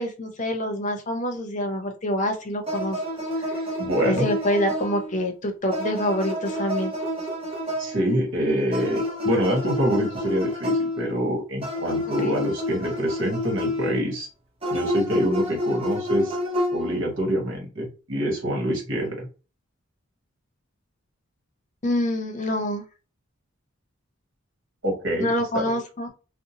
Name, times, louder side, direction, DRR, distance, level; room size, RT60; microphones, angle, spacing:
voice 1, 0.0-3.0 3.4-3.6 4.0-6.9 12.1-12.3 21.8-22.8 25.2-26.1, left 1 dB, 35° left, 4 dB, 0.6 m, -26 dB
sound 1, 2.7-5.2 5.7-8.2 8.7-11.3 11.6-14.0 14.6-17.1, left 1 dB, 25° right, 0.8 m, -29 dB
voice 2, 3.8-4.3 7.8-14.3 14.7-16.4 16.7-19.3 24.8-25.6, equal, 70° right, 0 dB, 1.3 m, -25 dB
2.7 x 2.1 x 2.8 m, 0.32 s
head